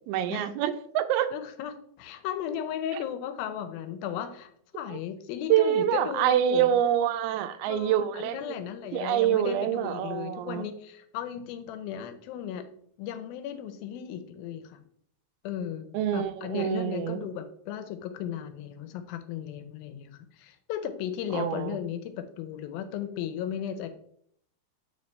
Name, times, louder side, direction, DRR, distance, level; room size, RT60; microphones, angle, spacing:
voice 1, 0.1-1.3 5.5-8.5 8.9-10.7 15.9-17.2 21.3-21.8, right 11 dB, 85° right, 11 dB, 2.4 m, -26 dB
voice 2, 1.3-6.8 7.6-12.7 13.0-14.8 15.4-23.9, left 9 dB, 85° left, 9 dB, 2.3 m, -36 dB
8.1 x 4.6 x 3.2 m, 0.66 s
omnidirectional pair, 4.3 m